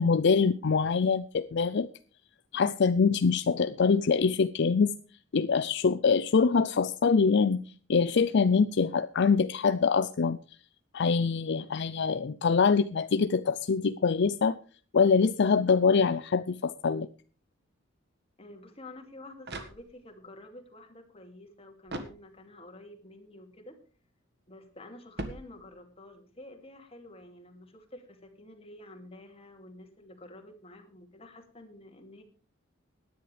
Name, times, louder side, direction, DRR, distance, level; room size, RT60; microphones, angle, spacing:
voice 1, 0.0-1.9 2.5-4.9 5.3-7.6 7.9-10.4 10.9-14.6 14.9-17.1, left 5 dB, 60° left, 13 dB, 0.5 m, -24 dB
voice 2, 18.4-23.8 24.5-32.2, left 1 dB, 30° left, 5 dB, 2.5 m, -49 dB
sound 1, 19.0-20.3 21.9-22.8 25.1-26.1, right 2 dB, 60° right, 1.7 m, -42 dB
18.0 x 10.5 x 3.3 m, 0.39 s
head